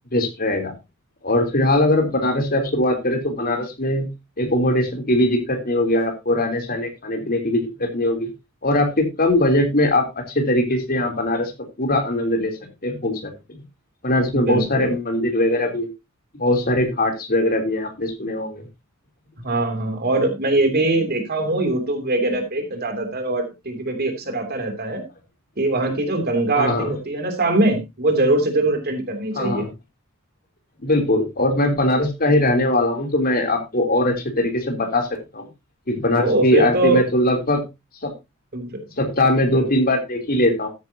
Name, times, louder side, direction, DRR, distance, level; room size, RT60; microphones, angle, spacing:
voice 1, 0.1-0.7 1.2-4.1 4.4-8.3 8.6-11.5 11.8-12.5 12.8-13.3 14.0-15.9 16.4-18.6 26.6-26.9 29.3-29.7 30.8-35.1 35.3-35.4 35.9-37.6 38.0-38.1 39.0-40.7, left 1 dB, 45° left, 3 dB, 3.2 m, -21 dB
voice 2, 14.3-14.9 19.4-25.0 25.6-29.7 36.2-37.0 38.5-38.8 39.5-39.7, right 2 dB, 50° right, 5 dB, 3.0 m, -22 dB
13.5 x 9.4 x 2.8 m, 0.24 s
head